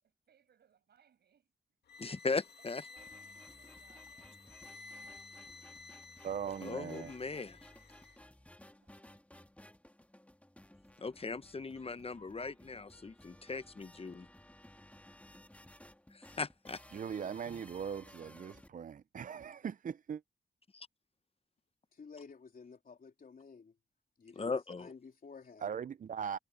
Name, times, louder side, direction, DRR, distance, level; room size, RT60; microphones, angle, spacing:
voice 1, 0.0-1.8 2.6-4.8 8.7-9.4, right 8 dB, 85° right, 7.8 m, -71 dB
sound 1, 1.9-8.2, left 3 dB, 90° left, 2.1 m, -54 dB
voice 2, 2.0-2.8 6.6-7.6 11.0-14.3 16.1-16.8 20.7-20.9 24.4-24.9, left 4 dB, 35° left, 0.9 m, -38 dB
sound 2, 3.0-18.7, left 1 dB, 10° left, 2.3 m, -58 dB
voice 3, 6.2-7.1 16.9-20.2 25.6-26.4, right 7 dB, 55° right, 0.5 m, -40 dB
voice 4, 21.9-23.8 24.2-25.8, left 5 dB, 60° left, 3.6 m, -53 dB
cardioid pair, 55°, 17 cm